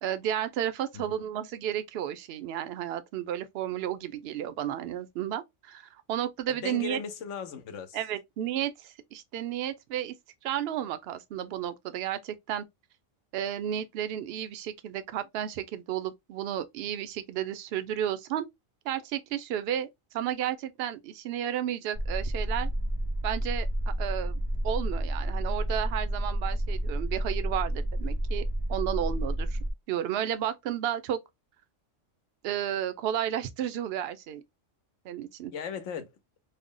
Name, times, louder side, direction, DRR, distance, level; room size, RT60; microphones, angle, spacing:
voice 1, 0.0-7.0 7.9-10.1 10.4-12.7 13.3-18.5 18.9-19.9 20.1-22.7 23.2-28.4 28.7-29.6 29.9-31.2 32.4-34.4 35.0-35.5, right 10 dB, 65° right, 0.7 m, -32 dB
voice 2, 6.5-8.0 35.5-36.1, left 6 dB, 70° left, 1.0 m, -37 dB
sound 1, 21.9-29.7, right 1 dB, 25° right, 0.6 m, -30 dB
3.3 x 2.1 x 3.7 m
omnidirectional pair, 1.3 m